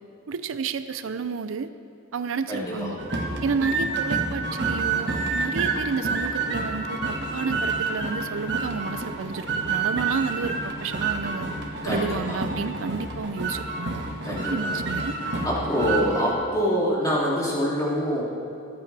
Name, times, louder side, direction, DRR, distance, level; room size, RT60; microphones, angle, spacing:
voice 1, 0.3-1.7 2.1-11.5 11.9-14.0 14.5-15.2, right 5 dB, 75° right, 11 dB, 0.5 m, -31 dB
voice 2, 2.5-2.9 11.8-12.4 14.2-14.7 15.2-18.2, equal, 15° left, -6 dB, 2.7 m, -25 dB
sound 1, 3.0-16.3, right 3 dB, 55° right, 1.5 m, -28 dB
24.5 x 8.6 x 3.4 m, 2.6 s
head